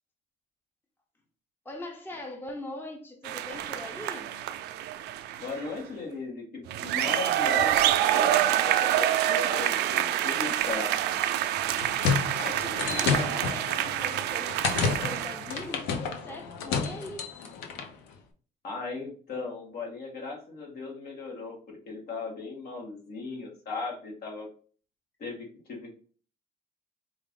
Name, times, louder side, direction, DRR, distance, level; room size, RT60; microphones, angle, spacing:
voice 1, 1.6-4.5 5.3-5.4 6.8-6.9 10.4-10.6 11.8-14.6 15.0-17.3, left 1 dB, 10° left, 0.7 m, -42 dB
sound 1, 3.2-5.7 6.7-15.6, right 12 dB, 80° right, 0.4 m, -27 dB
voice 2, 5.4-11.2 18.6-24.5 25.2-26.0, left 4 dB, 65° left, 1.7 m, -37 dB
sound 2, 11.5-17.9, left 6 dB, 90° left, 0.8 m, -31 dB
4.6 x 2.5 x 3.7 m
cardioid pair, 110°, 17 cm